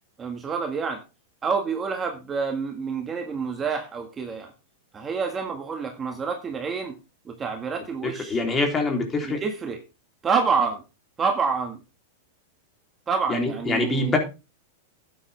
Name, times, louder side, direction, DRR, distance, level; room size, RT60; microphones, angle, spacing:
voice 1, 0.2-1.0 1.4-4.5 4.9-6.9 7.3-8.4 9.2-9.8 10.2-10.8 11.2-11.8 13.1-14.2, right 5 dB, 20° right, 4 dB, 1.9 m, -27 dB
voice 2, 8.0-9.4 13.3-14.2, left 3 dB, 20° left, 3 dB, 3.6 m, -25 dB
12.5 x 9.1 x 3.5 m, 0.28 s
hypercardioid pair, 130°, 0 cm